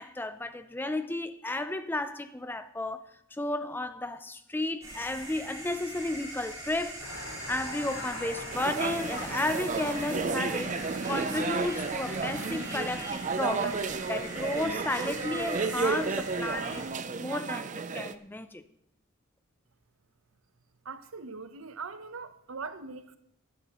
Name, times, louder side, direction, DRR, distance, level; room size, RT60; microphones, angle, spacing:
voice 1, 0.0-3.0 3.3-7.0 7.5-13.8 14.1-16.9 17.2-18.6, left 2 dB, 10° left, 0.5 m, -33 dB
sound 1, 4.8-16.9, right 1 dB, 15° right, 5.2 m, -42 dB
sound 2, 7.0-13.1, left 1 dB, 75° left, 4.9 m, -42 dB
sound 3, 8.5-18.1, right 4 dB, 35° right, 0.5 m, -32 dB
voice 2, 20.8-23.2, right 4 dB, 80° right, 0.9 m, -41 dB
20.0 x 11.5 x 3.0 m
head